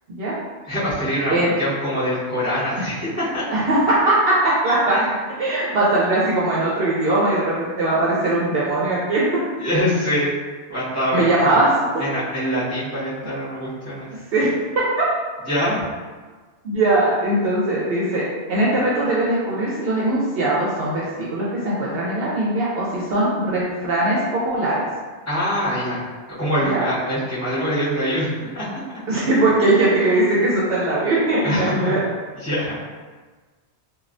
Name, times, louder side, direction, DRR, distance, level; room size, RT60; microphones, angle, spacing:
voice 1, 0.7-3.4 4.9-5.1 9.6-10.3 10.7-11.6 12.0-14.1 15.5-15.8 25.2-28.8 30.0-30.1 31.4-31.9 32.3-32.7, equal, 15° left, -13 dB, 1.4 m, -24 dB
voice 2, 3.5-5.0 5.4-9.2 11.1-12.0 14.3-14.5 16.6-24.8 26.6-26.8 29.1-32.0, right 2 dB, 65° right, -7 dB, 0.7 m, -20 dB
3.1 x 2.3 x 2.5 m, 1.4 s
omnidirectional pair, 1.2 m